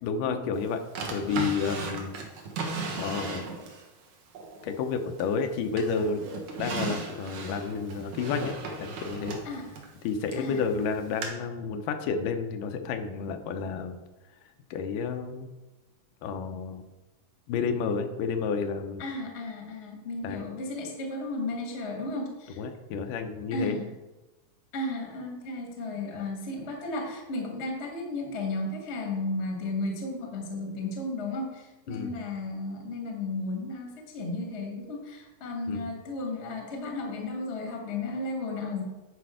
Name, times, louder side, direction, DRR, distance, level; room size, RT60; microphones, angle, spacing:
voice 1, 0.0-0.8 1.1-2.1 3.0-3.4 4.6-6.3 6.6-8.6 8.8-9.4 10.0-14.0 14.7-15.5 16.2-16.8 17.5-19.0 20.2-20.4 22.6-23.8 31.9-32.2 35.7-35.9, left 5 dB, 85° left, 6 dB, 2.4 m, -30 dB
Drawer open or close, 1.0-3.9 4.4-5.4 5.8-10.5 11.2-11.3, right 4 dB, 70° right, 2.5 m, -36 dB
voice 2, 19.0-22.6 23.5-23.9 24.7-38.8, left 2 dB, 35° left, 2 dB, 1.1 m, -34 dB
10.0 x 5.1 x 4.9 m, 1.1 s
omnidirectional pair, 3.7 m